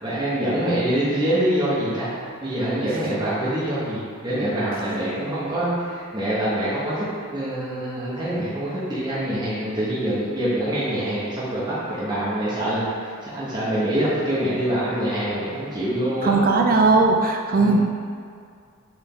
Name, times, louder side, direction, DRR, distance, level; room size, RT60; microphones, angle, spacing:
voice 1, 0.0-2.1 2.4-7.0 7.3-16.5 17.5-17.8, right 1 dB, 20° right, -10 dB, 1.2 m, -25 dB
voice 2, 16.2-17.8, right 3 dB, 40° right, 2 dB, 0.6 m, -18 dB
7.0 x 3.6 x 3.8 m, 2.2 s
head